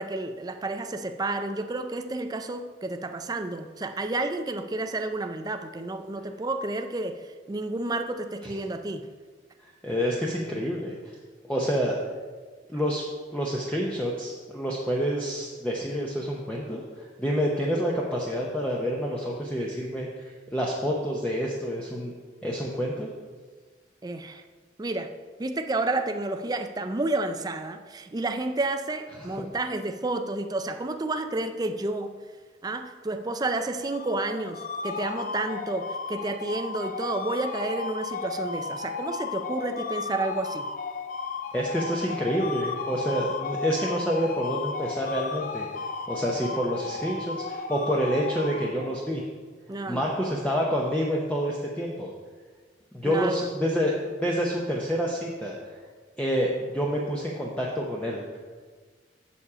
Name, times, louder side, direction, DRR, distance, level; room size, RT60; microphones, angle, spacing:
voice 1, 0.0-9.1 24.0-24.4 24.8-25.1 25.4-32.1 32.6-40.7 46.5-46.6 49.7-50.1 53.0-53.5, right 2 dB, 20° right, 7 dB, 0.4 m, -30 dB
voice 2, 9.6-11.0 11.4-12.0 12.7-13.0 13.3-22.1 22.4-23.1 41.5-49.2 49.9-52.1 52.9-55.6 56.2-58.2, equal, 5° left, -3 dB, 0.8 m, -28 dB
sound 1, 33.8-49.1, left 4 dB, 50° left, 0.4 m, -34 dB
7.2 x 7.0 x 4.9 m, 1.4 s
head